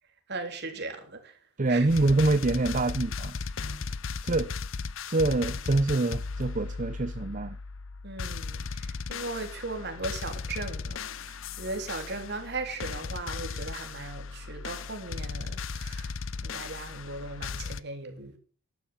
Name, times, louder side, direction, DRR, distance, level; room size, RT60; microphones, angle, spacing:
voice 1, 0.3-1.4 1.7-1.9 8.0-16.1 16.4-18.4, right 3 dB, 55° right, 3.4 m, -38 dB
voice 2, 1.6-3.8 4.2-4.5 5.1-7.6, right 2 dB, 40° right, 0.6 m, -26 dB
sound 1, 1.9-17.8, left 4 dB, 70° left, 0.7 m, -36 dB
12.0 x 11.5 x 7.3 m
head